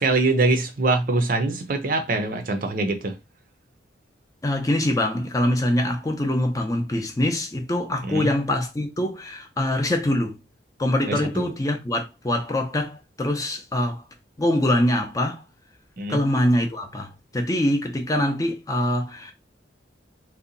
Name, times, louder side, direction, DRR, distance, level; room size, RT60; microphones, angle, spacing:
voice 1, 0.0-3.1 8.1-8.3 11.1-11.5 16.0-16.2, right 2 dB, 50° right, 0.5 m, -23 dB
voice 2, 4.4-10.4 10.8-14.0 14.4-15.4 16.1-19.3, left 1 dB, 20° left, 0.5 m, -24 dB
2.7 x 2.2 x 3.8 m
head